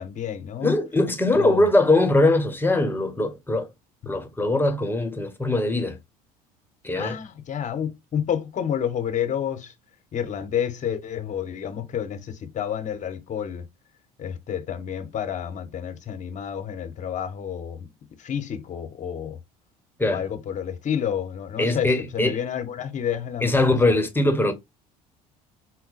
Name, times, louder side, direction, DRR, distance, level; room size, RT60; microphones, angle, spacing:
voice 1, 0.0-0.8 1.3-1.6 6.9-9.7 10.1-13.7 14.2-17.8 18.2-19.4 20.1-23.6, left 9 dB, 40° left, 1.0 m, -29 dB
voice 2, 0.6-3.7 4.1-6.0 6.8-7.2 20.0-20.2 21.6-22.4 23.4-24.5, left 2 dB, 10° left, 1.1 m, -21 dB
4.6 x 2.1 x 4.1 m
hypercardioid pair, 65°, 19 cm